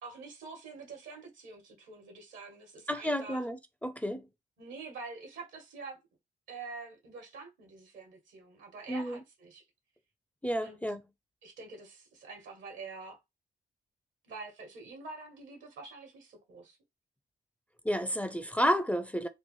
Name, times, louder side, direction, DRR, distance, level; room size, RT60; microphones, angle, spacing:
voice 1, 0.0-3.4 4.6-6.0 6.5-9.6 10.6-10.8 11.4-13.2 14.2-16.8, right 4 dB, 85° right, 1.2 m, -46 dB
voice 2, 2.9-4.3 8.9-9.2 10.4-11.0 17.8-19.3, equal, 5° left, 0.4 m, -31 dB
3.0 x 2.0 x 3.0 m
supercardioid pair, 60°, 19 cm